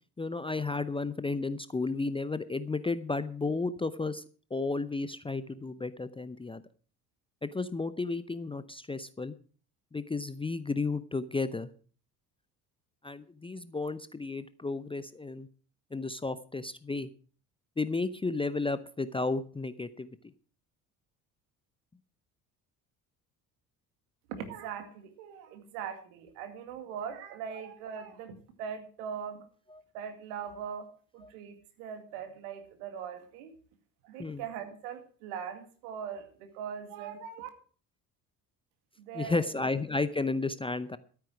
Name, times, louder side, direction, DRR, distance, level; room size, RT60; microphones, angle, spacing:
voice 1, 0.2-4.2 4.5-6.6 7.4-9.3 9.9-11.7 13.0-15.5 15.9-17.1 17.8-20.2 29.7-29.8 31.2-31.3 34.2-34.4 39.1-41.0, left 3 dB, 10° left, 14 dB, 0.6 m, -33 dB
voice 2, 24.3-29.4 29.9-30.9 31.1-33.5 34.0-37.5 39.0-39.5, right 7 dB, 70° right, 8 dB, 2.2 m, -41 dB
13.0 x 9.1 x 6.1 m, 0.42 s
figure-of-eight pair, 50°, 48 cm